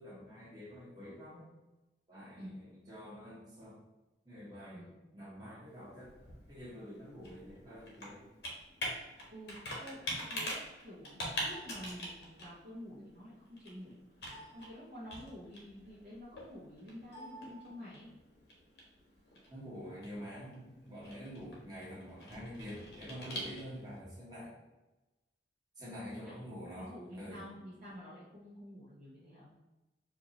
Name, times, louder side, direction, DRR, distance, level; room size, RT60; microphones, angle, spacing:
voice 1, 0.0-1.4 2.1-3.8 4.2-6.1 6.5-8.2 13.0-13.1 19.5-24.5 25.8-27.5, equal, 20° right, -8 dB, 1.4 m, -47 dB
Computer keyboard, 5.7-24.0, equal, 65° left, 1.0 m, -45 dB
voice 2, 9.3-13.9 14.5-18.1 26.1-29.5, equal, 40° right, -9 dB, 0.8 m, -49 dB
4.5 x 2.5 x 2.9 m, 1.0 s
head